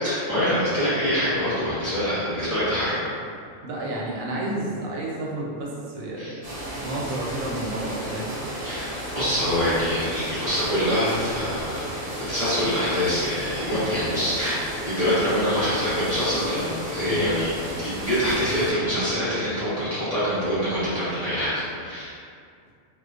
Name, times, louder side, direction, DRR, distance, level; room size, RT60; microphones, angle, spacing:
voice 1, 0.0-2.9 6.2-6.4 8.6-11.8 12.3-14.6 14.8-22.2, equal, 35° left, -13 dB, 0.7 m, -25 dB
voice 2, 3.6-6.6 6.8-8.4 17.0-17.3, right 1 dB, 85° right, -4 dB, 1.0 m, -31 dB
sound 1, 6.4-18.7, equal, 55° right, 0.8 m, -33 dB
2.4 x 2.1 x 2.4 m, 2.3 s
omnidirectional pair, 1.4 m